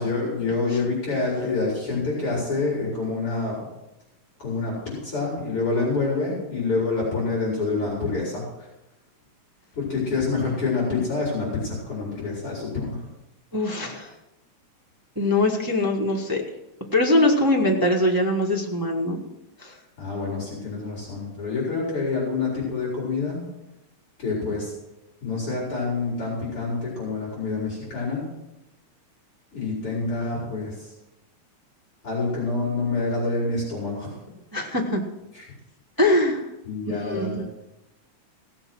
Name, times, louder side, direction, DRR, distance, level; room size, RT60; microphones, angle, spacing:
voice 1, 0.0-3.7 4.4-8.7 9.7-13.1 20.0-23.4 24.2-24.7 25.2-28.3 29.5-30.9 32.0-34.2 35.3-35.5 36.6-37.5, left 3 dB, 45° left, -5 dB, 5.0 m, -27 dB
voice 2, 13.5-14.1 15.1-16.4 16.9-19.2 19.6-19.7 34.5-35.0 36.0-36.4 36.9-37.4, left 1 dB, 20° right, -1 dB, 0.6 m, -22 dB
16.5 x 7.9 x 6.1 m, 0.92 s
omnidirectional pair, 3.4 m